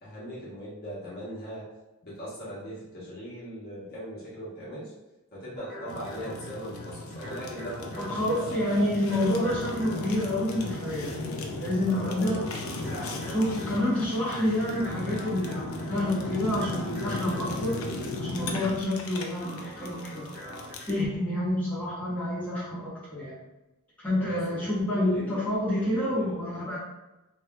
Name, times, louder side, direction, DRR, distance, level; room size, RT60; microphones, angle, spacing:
voice 1, 0.0-1.7 2.0-4.9 5.3-8.4 9.0-9.1 11.8-13.4 24.2-25.5 25.7-26.6, equal, 45° left, -8 dB, 1.1 m, -40 dB
sound 1, 5.6-20.7, left 1 dB, 10° right, 1.1 m, -44 dB
Fire, 5.9-21.0, left 2 dB, 70° left, 0.5 m, -37 dB
voice 2, 8.0-12.4 13.3-17.7 18.3-20.3 20.9-23.3 24.0-26.8, left 1 dB, 5° left, -11 dB, 1.1 m, -28 dB
3.1 x 2.8 x 2.3 m, 1.0 s
head